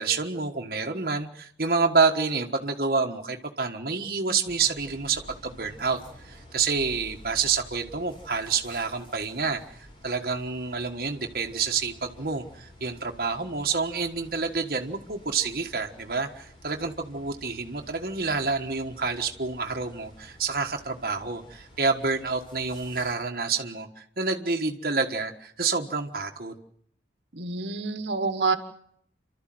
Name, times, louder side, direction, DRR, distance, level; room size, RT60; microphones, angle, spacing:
voice 1, 0.0-6.0 6.2-26.5, right 4 dB, 55° right, 3 dB, 1.5 m, -28 dB
sound 1, 4.5-23.1, left 1 dB, 30° left, 4.6 m, -50 dB
voice 2, 27.3-28.6, right 4 dB, 85° right, 9 dB, 1.5 m, -27 dB
28.5 x 13.0 x 7.7 m, 0.66 s
head